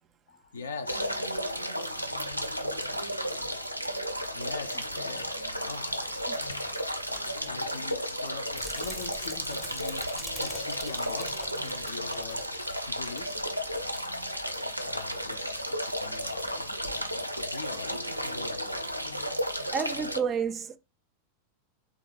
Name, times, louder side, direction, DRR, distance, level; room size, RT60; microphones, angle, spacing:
voice 1, 0.3-1.4 4.3-7.1 7.4-13.6 14.8-19.3, left 4 dB, 70° left, 0.4 m, -43 dB
sound 1, 0.9-20.2, equal, 90° right, 0.4 m, -33 dB
sound 2, 4.1-19.6, equal, 90° left, 0.9 m, -54 dB
sound 3, 8.5-13.4 13.6-14.0 14.5-14.6, left 1 dB, 10° left, 0.7 m, -44 dB
voice 2, 19.7-20.8, right 6 dB, 25° right, 0.4 m, -30 dB
3.5 x 2.3 x 3.2 m
figure-of-eight pair, 90°, 0 cm